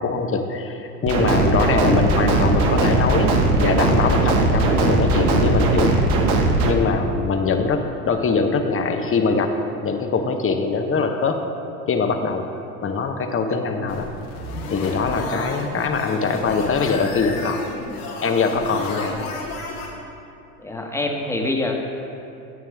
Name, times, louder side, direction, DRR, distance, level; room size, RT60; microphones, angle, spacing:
voice 1, 0.0-5.9 6.6-9.5 9.8-11.4 11.9-12.4 12.8-14.1 14.7-17.6 18.2-19.2, left 4 dB, 30° left, 5 dB, 1.1 m, -22 dB
sound 1, 1.1-6.7, right 2 dB, 70° right, 1.4 m, -19 dB
sound 2, 13.9-19.9, left 2 dB, 85° left, 2.4 m, -32 dB
voice 2, 20.6-21.7, left 2 dB, 5° left, 0 dB, 1.5 m, -25 dB
13.0 x 8.8 x 3.6 m, 2.8 s
hypercardioid pair, 75°, 45 cm